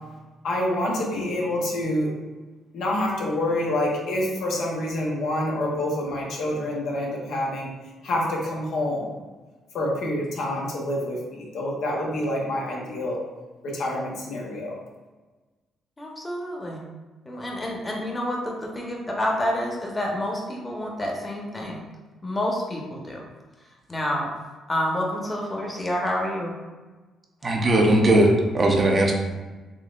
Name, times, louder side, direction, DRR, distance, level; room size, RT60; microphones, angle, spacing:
voice 1, 0.4-2.1 2.7-7.7 8.0-9.1 9.7-13.2 13.6-14.7, left 1 dB, 70° left, -3 dB, 0.9 m, -27 dB
voice 2, 16.0-16.8 17.2-21.8 22.2-23.2 23.9-24.3 24.7-26.5, left 1 dB, 25° left, -1 dB, 1.1 m, -28 dB
voice 3, 27.4-29.1, right 1 dB, 40° right, 1 dB, 0.7 m, -18 dB
4.0 x 3.0 x 2.5 m, 1.3 s
supercardioid pair, 55°, 0 cm